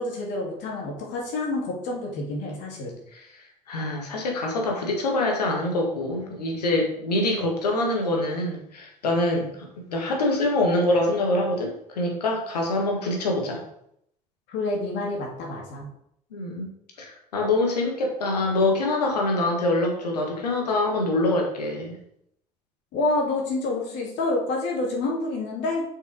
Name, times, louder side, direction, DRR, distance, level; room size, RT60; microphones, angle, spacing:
voice 1, 0.0-2.9 14.5-15.9 22.9-25.8, left 2 dB, 65° left, -1 dB, 2.5 m, -28 dB
voice 2, 3.1-13.6 16.3-16.7 17.0-22.0, left 2 dB, 85° left, 1 dB, 1.5 m, -25 dB
6.9 x 5.4 x 5.1 m, 0.73 s
figure-of-eight pair, 50°, 20 cm